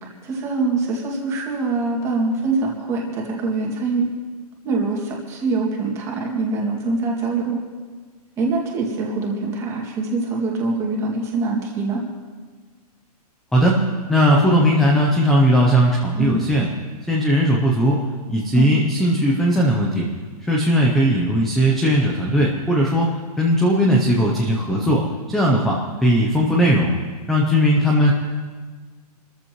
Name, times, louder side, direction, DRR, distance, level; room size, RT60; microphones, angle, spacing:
voice 1, 0.0-4.1 4.6-7.6 8.4-12.0 16.2-16.4 18.6-18.8, right 3 dB, 15° right, -1 dB, 2.1 m, -24 dB
voice 2, 14.1-16.7 17.1-18.0 18.3-20.1 20.5-23.1 23.4-26.9 27.3-28.1, equal, ahead, -2 dB, 0.6 m, -18 dB
28.5 x 14.5 x 3.0 m, 1.5 s
hypercardioid pair, 175°, 20 cm